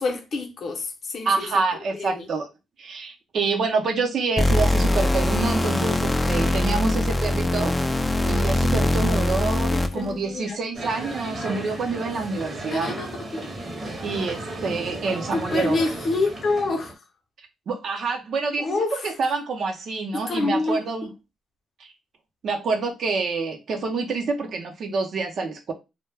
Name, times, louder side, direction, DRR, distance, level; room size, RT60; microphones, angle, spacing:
voice 1, 0.0-1.5 1.9-2.3 9.7-10.6 12.7-13.1 15.3-16.9 18.6-19.1 20.1-20.8, left 3 dB, 50° left, 0.6 m, -27 dB
voice 2, 1.2-2.5 2.8-7.8 8.3-12.9 14.0-15.8 17.7-21.1 21.8-21.9 22.4-25.7, right 4 dB, 60° right, 0.6 m, -27 dB
sound 1, 4.4-10.1, left 1 dB, 15° left, 0.3 m, -22 dB
sound 2, 10.7-16.9, right 1 dB, 30° right, 0.8 m, -34 dB
2.2 x 2.1 x 3.2 m
cardioid pair, 90°, 0 cm